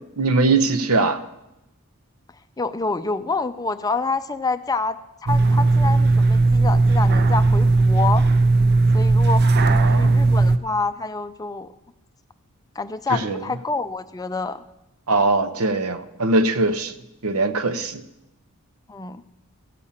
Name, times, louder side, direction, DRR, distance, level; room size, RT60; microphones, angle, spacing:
voice 1, 0.2-1.2 9.6-10.4 13.1-13.4 15.1-16.9 17.2-18.0, right 3 dB, 80° right, 0.8 m, -21 dB
voice 2, 2.6-5.0 5.2-8.2 8.9-11.7 12.8-14.6 18.9-19.2, left 3 dB, 15° left, 0.4 m, -27 dB
sound 1, 5.3-10.6, right 3 dB, 50° right, 0.6 m, -17 dB
15.0 x 8.7 x 5.7 m
head